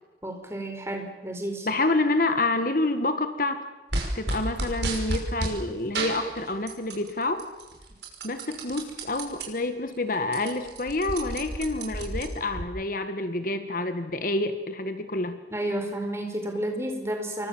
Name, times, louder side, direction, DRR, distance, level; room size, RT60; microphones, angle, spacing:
voice 1, 0.2-1.7 15.5-17.5, right 1 dB, 15° right, 3 dB, 4.8 m, -31 dB
voice 2, 1.7-3.6 4.2-7.5 8.2-15.4, left 2 dB, 50° left, 9 dB, 1.7 m, -28 dB
sound 1, 3.9-5.6 5.9-7.1 7.4-9.5 9.9-10.0 10.2-12.6, right 2 dB, 80° right, 6.1 m, -31 dB
27.0 x 23.5 x 7.4 m, 1.1 s
head